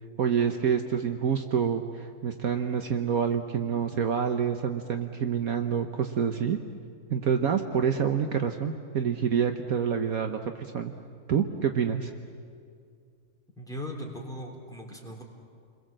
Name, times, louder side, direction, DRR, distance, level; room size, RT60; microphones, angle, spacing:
voice 1, 0.2-6.6 7.1-10.9 11.3-12.1, right 7 dB, 65° right, 6 dB, 1.3 m, -27 dB
voice 2, 13.6-15.2, left 1 dB, ahead, 0 dB, 3.7 m, -38 dB
29.5 x 21.5 x 7.6 m, 2.3 s
omnidirectional pair, 1.7 m